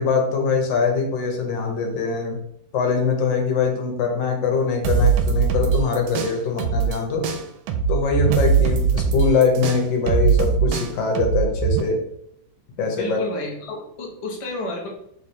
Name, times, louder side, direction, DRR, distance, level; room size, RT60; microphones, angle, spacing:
voice 1, 0.0-2.4 2.7-7.3 7.9-12.0 12.8-13.2, left 4 dB, 70° left, 2 dB, 1.6 m, -22 dB
sound 1, 4.8-7.0 7.2-11.8, right 6 dB, 85° right, 1.4 m, -20 dB
voice 2, 12.7-14.9, left 2 dB, 55° left, -1 dB, 0.3 m, -31 dB
4.3 x 3.5 x 3.2 m, 0.72 s
omnidirectional pair, 2.1 m